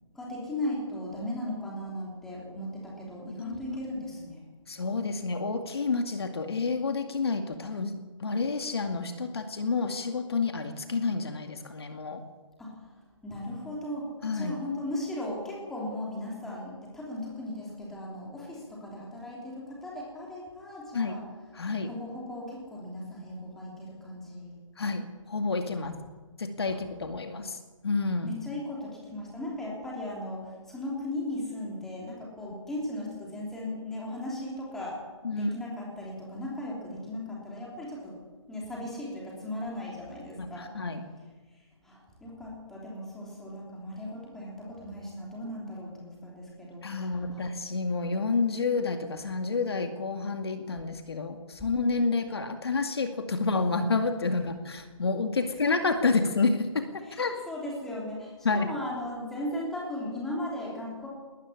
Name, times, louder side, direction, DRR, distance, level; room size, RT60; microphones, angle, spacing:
voice 1, 0.1-4.4 12.6-12.7 13.2-21.2 21.8-24.5 26.7-26.8 28.2-35.0 35.3-38.1 38.5-40.7 41.8-47.0 47.3-47.4 57.1-61.1, left 1 dB, ahead, -4 dB, 3.3 m, -37 dB
voice 2, 3.4-3.8 4.7-7.9 8.2-12.2 14.2-14.6 20.9-21.2 21.5-21.9 24.8-26.0 26.4-27.6 27.8-28.4 35.2-35.5 40.4-41.0 46.8-57.3 58.4-58.7, left 4 dB, 50° left, 6 dB, 2.2 m, -29 dB
20.0 x 19.0 x 10.0 m, 1.3 s
hypercardioid pair, 170°, 17 cm